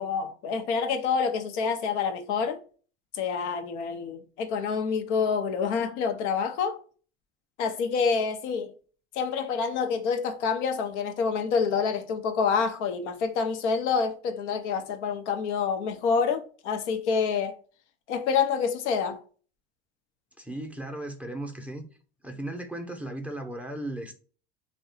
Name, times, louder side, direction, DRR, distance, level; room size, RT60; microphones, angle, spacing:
voice 1, 0.0-2.6 3.1-6.8 7.6-8.7 9.2-17.6 18.1-19.2, left 5 dB, 85° left, 0.6 m, -27 dB
voice 2, 20.4-21.9 22.2-24.1, right 1 dB, 5° right, 0.5 m, -36 dB
2.7 x 2.2 x 2.5 m
supercardioid pair, 95°, 34 cm